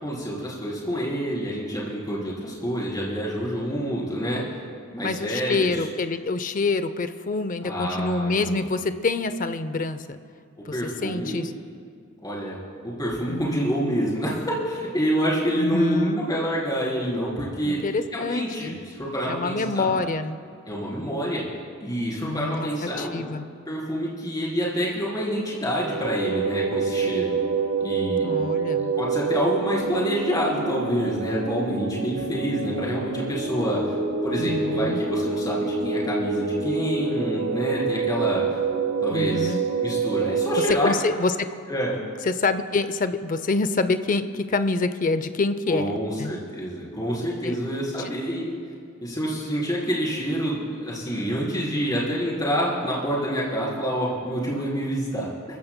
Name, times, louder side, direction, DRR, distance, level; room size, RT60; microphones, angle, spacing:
voice 1, 0.0-4.4 4.9-5.9 7.6-8.6 10.7-11.5 12.2-12.6 12.8-17.8 18.1-20.0 20.7-21.4 21.8-23.2 23.7-27.3 27.8-28.3 29.0-34.0 34.2-38.4 39.0-39.5 39.8-40.9 41.7-42.0 45.7-48.6 49.0-55.3, equal, 20° left, -6 dB, 3.7 m, -27 dB
voice 2, 5.0-10.2 10.6-10.7 11.0-11.5 13.3-13.6 15.6-16.3 17.6-18.8 19.3-20.4 22.2-23.5 28.2-28.9 34.4-35.0 39.1-39.6 40.8-41.5 42.3-46.3 47.4-47.6, left 3 dB, 40° left, 11 dB, 0.6 m, -26 dB
sound 1, 25.7-40.7, right 4 dB, 85° right, 1.1 m, -27 dB
29.5 x 15.0 x 2.2 m, 2.2 s
head